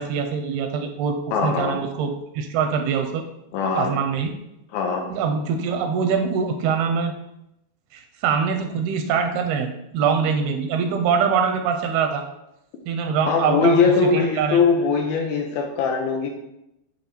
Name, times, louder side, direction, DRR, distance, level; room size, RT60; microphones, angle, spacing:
voice 1, 0.0-3.2 3.7-4.3 5.1-7.1 7.9-12.2 12.9-14.6, right 6 dB, 80° right, 5 dB, 2.4 m, -23 dB
voice 2, 1.3-1.8 3.5-3.9 4.7-5.0 13.3-16.3, left 5 dB, 75° left, 2 dB, 2.3 m, -21 dB
9.2 x 3.6 x 4.4 m, 0.84 s
omnidirectional pair, 4.7 m